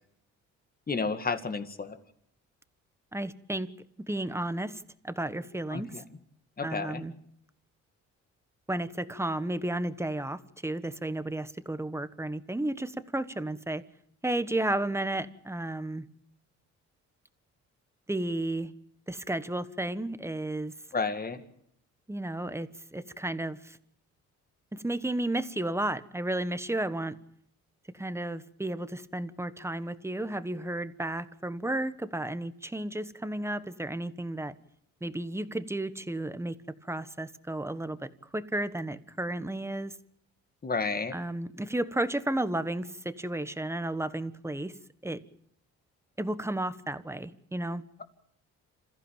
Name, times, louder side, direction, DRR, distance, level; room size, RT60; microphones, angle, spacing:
voice 1, 0.9-2.0 5.7-6.0 6.6-7.1 20.9-21.4 40.6-41.2, left 4 dB, 30° left, 9 dB, 2.2 m, -31 dB
voice 2, 3.1-3.7 4.0-5.9 6.6-7.1 8.7-13.8 14.2-16.0 18.1-18.7 19.1-20.7 22.1-23.8 24.7-27.2 27.9-34.5 35.0-40.0 41.1-44.7 45.0-45.2 46.2-47.8, right 1 dB, 10° right, 12 dB, 1.3 m, -33 dB
27.5 x 15.0 x 8.9 m, 0.71 s
cardioid pair, 90°, 30 cm